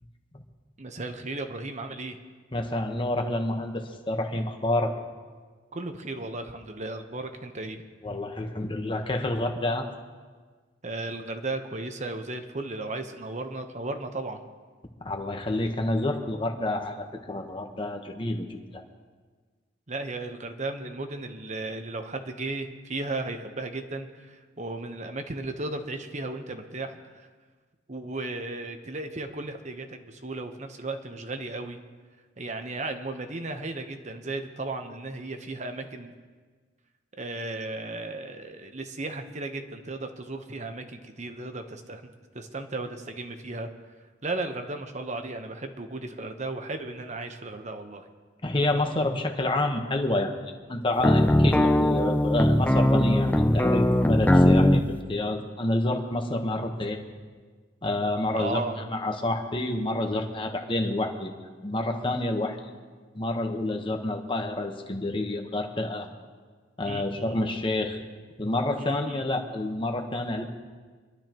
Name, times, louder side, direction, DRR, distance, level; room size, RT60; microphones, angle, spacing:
voice 1, 0.8-2.2 5.7-7.8 10.8-14.4 19.9-27.3 27.9-31.8 32.4-36.1 37.2-42.0 42.3-43.7 44.2-48.1 58.3-58.8 66.8-67.4 68.8-69.2, right 2 dB, 40° right, 6 dB, 1.1 m, -35 dB
voice 2, 2.5-4.9 8.0-9.9 15.0-18.8 48.4-50.3 50.7-57.0 57.8-58.6 58.9-61.3 61.6-62.6 63.1-66.1 66.8-68.0 68.4-70.4, left 2 dB, 25° left, 4 dB, 1.2 m, -28 dB
sound 1, 51.0-54.8, left 1 dB, 10° left, 0.5 m, -20 dB
24.0 x 12.0 x 3.1 m, 1.4 s
head